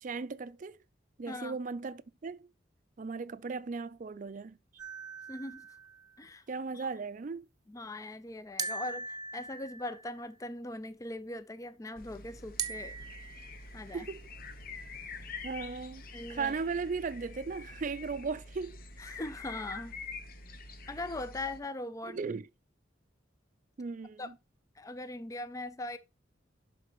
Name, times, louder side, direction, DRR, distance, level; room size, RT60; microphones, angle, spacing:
voice 1, 0.0-0.8 1.2-2.5 3.0-4.6 6.5-7.4 13.9-14.3 15.4-16.0 16.3-18.8 22.0-22.5 23.8-24.3, right 4 dB, 45° right, 0.4 m, -37 dB
sound 1, 4.8-6.2 8.6-10.2 12.6-13.7, right 4 dB, 20° right, 0.8 m, -40 dB
voice 2, 5.3-5.7 6.2-6.5 6.7-6.9 7.7-13.0 13.7-14.1 15.0-15.4 16.1-16.5 19.0-19.9 20.9-22.2 24.2-24.3 24.8-26.0, left 2 dB, 15° left, 0.4 m, -40 dB
sound 2, 12.0-21.6, left 3 dB, 50° left, 1.0 m, -46 dB
11.5 x 4.0 x 3.0 m
head